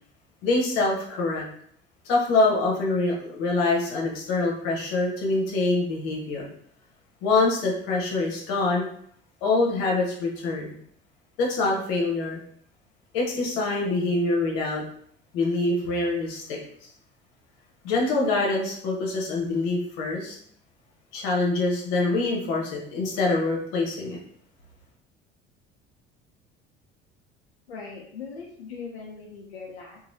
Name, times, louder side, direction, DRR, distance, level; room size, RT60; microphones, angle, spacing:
voice 1, 0.4-1.5 2.0-6.5 7.2-8.8 9.4-10.7 11.4-12.4 13.1-14.8 15.3-16.6 17.8-20.3 21.1-24.2, left 3 dB, 65° left, -1 dB, 1.0 m, -25 dB
voice 2, 27.7-30.0, left 5 dB, 90° left, -2 dB, 0.5 m, -40 dB
3.0 x 2.6 x 2.6 m, 0.64 s
hypercardioid pair, 60°, 31 cm